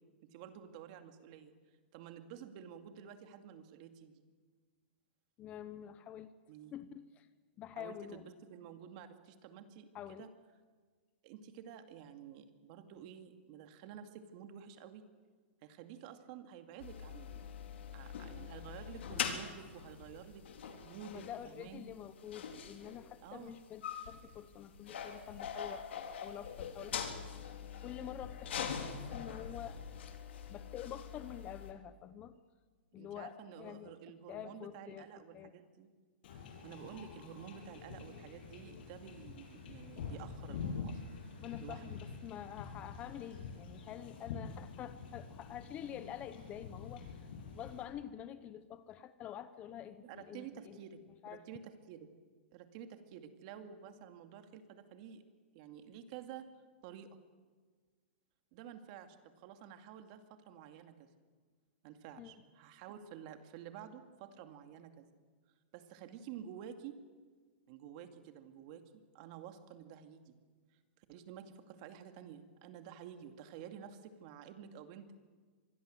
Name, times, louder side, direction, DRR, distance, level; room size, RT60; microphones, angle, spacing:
voice 1, 0.2-1.5 1.9-4.1 6.5-6.7 7.8-10.3 11.2-15.0 15.6-17.4 17.9-21.9 23.2-23.5 33.0-35.9 36.6-41.0 41.6-42.0 50.0-52.1 52.5-55.2 55.5-56.5 56.8-57.1 58.5-61.1 61.8-65.1 65.7-67.0 67.7-70.3 71.0-75.1, right 9 dB, 35° right, 7 dB, 2.3 m, -51 dB
voice 2, 5.4-6.3 6.7-7.3 7.6-8.3 9.9-10.3 21.1-27.0 27.7-29.8 30.1-30.2 30.5-32.4 32.9-34.0 34.3-35.1 35.3-35.5 41.4-50.8 51.1-51.5 62.2-62.4, left 10 dB, 20° left, 13 dB, 0.8 m, -47 dB
sound 1, 16.8-31.7, left 7 dB, 70° left, 3.6 m, -43 dB
Wind / Ocean / Boat Water vehicle, 36.2-47.8, left 5 dB, 55° left, 7.4 m, -46 dB
25.5 x 21.0 x 7.8 m, 1.5 s
hypercardioid pair, 160°, 6 cm